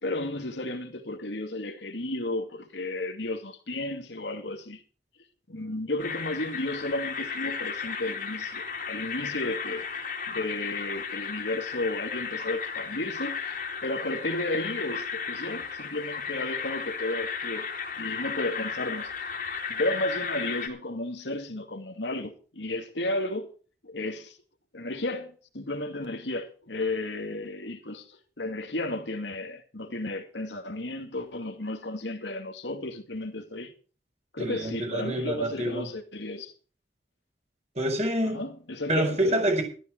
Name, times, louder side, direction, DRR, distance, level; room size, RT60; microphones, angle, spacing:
voice 1, 0.0-4.8 5.5-9.9 10.3-17.7 18.0-19.1 19.7-23.5 23.8-24.4 24.7-33.7 34.3-36.5 38.2-39.4, left 2 dB, 90° left, 2.4 m, -33 dB
sound 1, 6.0-20.7, left 6 dB, 50° left, 2.8 m, -34 dB
voice 2, 34.4-35.9 37.7-38.4 38.9-39.6, right 1 dB, 40° right, 4.4 m, -27 dB
13.5 x 13.0 x 4.6 m
head